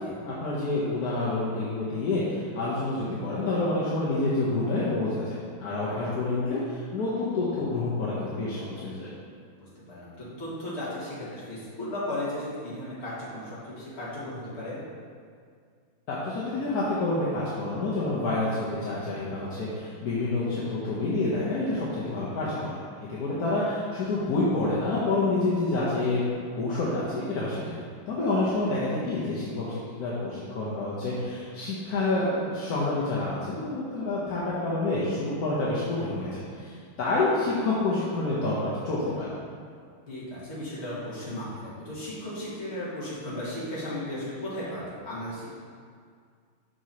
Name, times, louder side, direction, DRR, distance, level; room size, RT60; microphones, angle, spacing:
voice 1, 0.0-9.1 16.1-22.8 23.1-26.2 26.5-27.8 28.1-39.3, left 2 dB, 60° left, -7 dB, 1.0 m, -28 dB
voice 2, 9.6-14.8 22.0-22.3 28.9-29.0 40.1-45.6, left 1 dB, 30° left, -9 dB, 1.8 m, -36 dB
6.1 x 6.1 x 2.8 m, 2.1 s
omnidirectional pair, 2.4 m